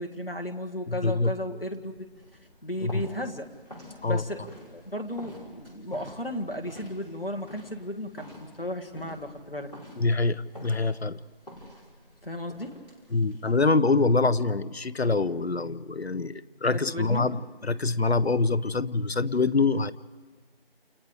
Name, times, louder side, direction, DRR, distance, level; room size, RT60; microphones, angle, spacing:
voice 1, 0.0-1.9 2.6-3.5 4.1-9.7 12.2-12.8 16.7-17.3, left 1 dB, 65° left, 4 dB, 1.8 m, -34 dB
voice 2, 0.9-1.3 2.8-3.0 4.0-4.2 10.0-11.2 13.1-19.9, left 3 dB, 85° left, 16 dB, 0.7 m, -25 dB
sound 1, 1.8-13.9, left 1 dB, 40° left, 5.2 m, -48 dB
29.0 x 28.5 x 3.4 m, 1.4 s
figure-of-eight pair, 180°, 31 cm